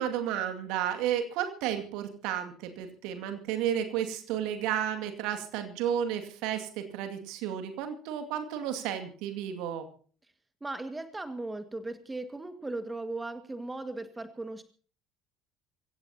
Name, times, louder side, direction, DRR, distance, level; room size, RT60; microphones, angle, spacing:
voice 1, 0.0-9.9, right 10 dB, 60° right, 7 dB, 2.3 m, -32 dB
voice 2, 10.6-14.6, right 2 dB, 15° right, 10 dB, 1.8 m, -37 dB
25.5 x 16.0 x 2.9 m, 0.42 s
figure-of-eight pair, 55°, 0 cm